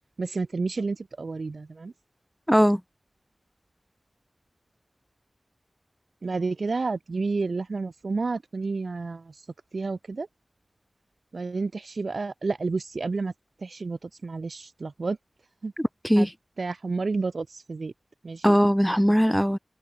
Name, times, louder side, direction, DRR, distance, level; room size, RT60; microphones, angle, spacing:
voice 1, 0.2-1.9 6.2-9.3 9.7-10.3 11.3-13.3 13.6-15.2 15.6-15.7 16.2-16.3 16.6-17.9 18.2-18.6, right 3 dB, 80° right, 5.4 m, -30 dB
voice 2, 2.5-2.8 15.8-16.3 18.4-19.6, equal, ahead, 1.5 m, -20 dB
wide cardioid pair, 65°, 0 cm